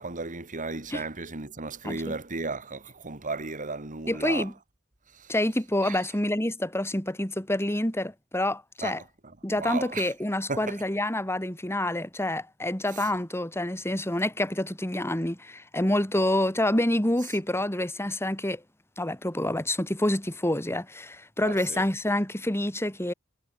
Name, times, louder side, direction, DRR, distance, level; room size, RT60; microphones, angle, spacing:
voice 1, 0.0-4.5 5.1-5.3 5.8-6.1 8.8-10.1 10.5-10.8 12.9-13.1 17.2-17.4 21.4-21.9, right 3 dB, 35° right, 2.2 m, -35 dB
voice 2, 4.1-4.5 5.3-9.0 9.4-18.6 19.0-23.1, left 1 dB, 10° left, 2.7 m, -27 dB
head